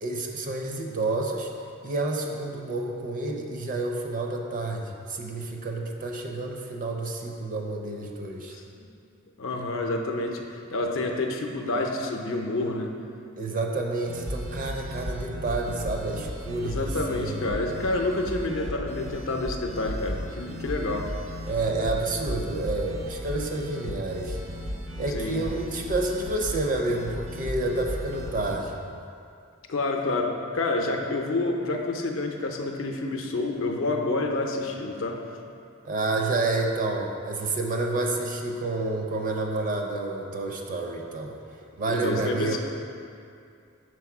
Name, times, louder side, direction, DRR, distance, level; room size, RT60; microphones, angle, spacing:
voice 1, 0.0-1.5 1.8-8.5 9.6-9.7 13.4-17.6 21.5-24.4 25.0-28.8 35.8-41.3 41.8-42.6, right 2 dB, 40° right, 1 dB, 0.6 m, -29 dB
voice 2, 8.5-8.9 9.4-12.9 16.6-21.1 24.9-25.4 29.7-35.2 41.9-42.6, left 2 dB, 65° left, 2 dB, 0.6 m, -28 dB
sound 1, 14.0-28.6, equal, 70° right, 0.8 m, -35 dB
4.7 x 4.2 x 5.9 m, 2.4 s
head